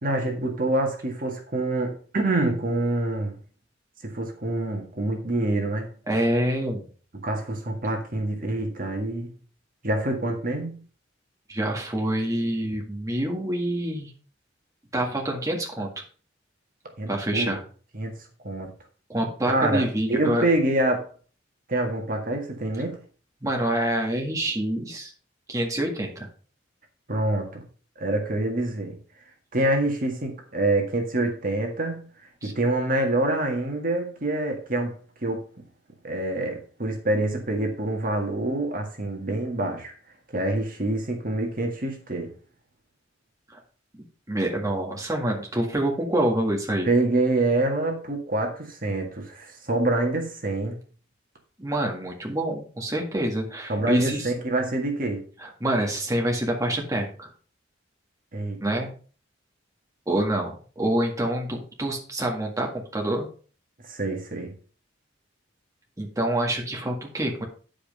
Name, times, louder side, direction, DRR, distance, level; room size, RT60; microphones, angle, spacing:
voice 1, 0.0-3.4 4.0-5.9 7.2-9.3 9.8-10.8 17.0-17.5 17.9-18.2 18.4-18.7 19.4-21.1 21.7-23.0 27.1-27.6 28.0-29.0 29.5-32.0 32.4-35.5 36.0-39.9 40.3-42.3 46.8-50.8 53.7-55.2 58.3-58.6 63.8-64.5, right 2 dB, 45° right, 1.8 m, -26 dB
voice 2, 6.1-6.9 11.5-14.1 14.9-15.9 17.1-17.6 19.1-20.4 23.4-25.1 25.5-26.3 32.4-32.5 43.5-43.6 44.3-46.9 51.6-54.3 55.4-57.3 58.6-58.9 60.1-63.3 66.0-67.4, right 1 dB, 15° right, 1.8 m, -26 dB
10.0 x 5.2 x 5.4 m
head